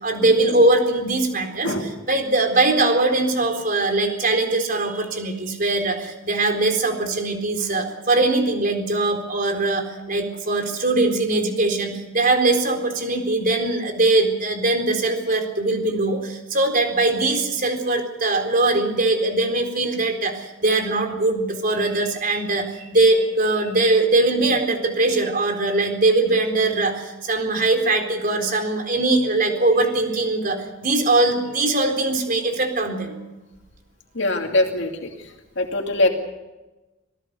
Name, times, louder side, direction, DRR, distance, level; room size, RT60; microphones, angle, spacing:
voice 1, 0.0-26.9 27.2-30.6 30.8-33.2, right 2 dB, 45° right, 5 dB, 4.1 m, -21 dB
voice 2, 34.1-35.1 35.6-36.1, left 2 dB, 60° left, 3 dB, 2.5 m, -22 dB
27.0 x 18.0 x 6.8 m, 1.1 s
head